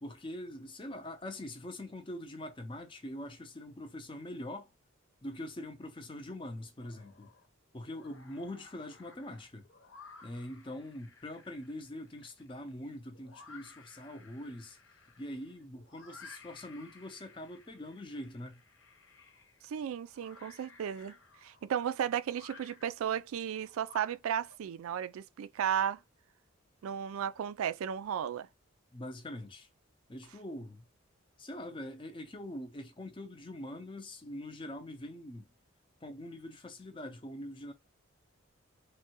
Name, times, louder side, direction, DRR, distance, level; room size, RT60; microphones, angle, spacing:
voice 1, 0.0-4.7 5.2-7.3 7.7-9.6 10.2-14.8 15.2-18.6 28.9-29.7 30.1-30.8 31.4-35.5 36.0-37.7, left 1 dB, 25° left, 0.5 m, -43 dB
sound 1, 6.8-7.5 7.8-24.5, left 4 dB, 60° left, 0.8 m, -57 dB
voice 2, 19.6-21.1 21.4-26.0 26.8-28.5, right 9 dB, 80° right, 0.3 m, -34 dB
3.2 x 2.2 x 2.9 m
head